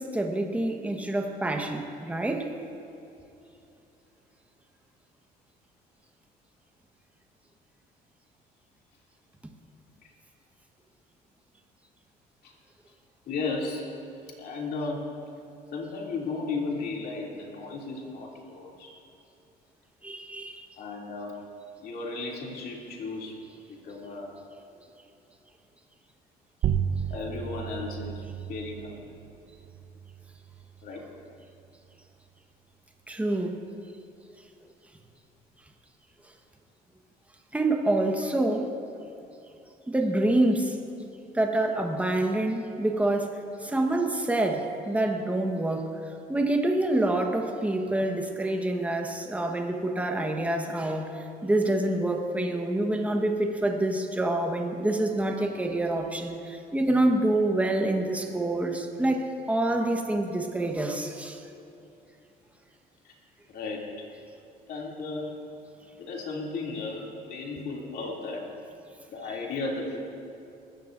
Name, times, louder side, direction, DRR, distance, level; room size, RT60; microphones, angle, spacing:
voice 1, 0.0-2.5 20.0-20.7 33.1-33.5 37.5-38.7 39.9-40.7 41.3-43.3 43.6-45.9 46.3-61.4, right 1 dB, 10° right, 3 dB, 1.3 m, -27 dB
voice 2, 13.3-13.9 14.4-15.0 15.7-18.9 20.8-21.4 21.8-23.4 23.7-24.3 27.1-28.2 28.5-29.0 30.8-31.0 43.7-43.8 63.0-63.1 63.5-64.1 64.7-65.3 66.0-68.5 69.1-70.0, left 3 dB, 65° left, -2 dB, 2.8 m, -35 dB
sound 1, 26.6-31.7, right 8 dB, 55° right, 0.7 m, -34 dB
20.0 x 15.0 x 2.6 m, 2.7 s
cardioid pair, 110°, 17 cm